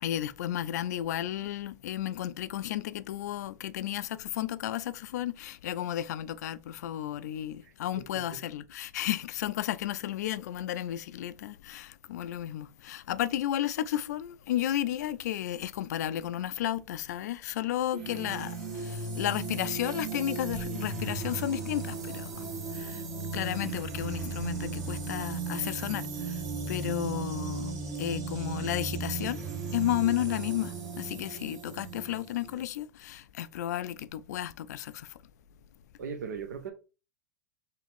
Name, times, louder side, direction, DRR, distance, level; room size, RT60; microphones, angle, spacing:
voice 1, 0.0-22.3 22.7-23.0 23.3-26.4 26.7-27.7 28.0-29.4 29.7-35.1, left 12 dB, 65° left, 0.4 m, -33 dB
sound 1, 17.9-32.6, right 4 dB, 55° right, 1.9 m, -36 dB
voice 2, 36.0-36.7, right 6 dB, 75° right, 0.7 m, -38 dB
3.7 x 2.8 x 3.5 m
hypercardioid pair, 110°, 10 cm